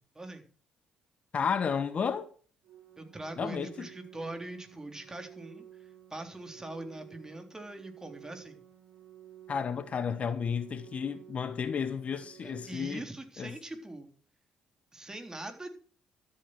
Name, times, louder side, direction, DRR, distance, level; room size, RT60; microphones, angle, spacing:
voice 1, 1.3-2.3 3.4-3.9 9.5-13.0 13.4-13.5, left 6 dB, 50° left, 1.2 m, -32 dB
Organ, 2.6-13.6, right 11 dB, 65° right, 3.2 m, -53 dB
voice 2, 3.0-8.6 12.4-14.1 14.9-15.7, right 2 dB, 20° right, 3.7 m, -42 dB
13.0 x 8.6 x 6.3 m
hypercardioid pair, 50°, 3 cm